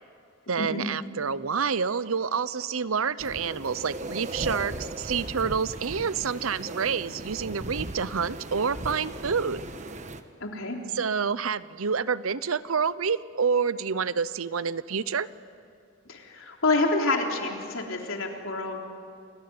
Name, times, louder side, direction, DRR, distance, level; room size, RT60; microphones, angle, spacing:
voice 1, 0.5-9.7 10.9-15.3, right 6 dB, 90° right, 17 dB, 0.8 m, -28 dB
sound 1, 3.2-10.2, right 1 dB, 35° right, 1.2 m, -38 dB
voice 2, 10.4-10.8 16.1-18.8, left 2 dB, 80° left, 2 dB, 3.6 m, -27 dB
29.0 x 20.5 x 9.7 m, 2.5 s
head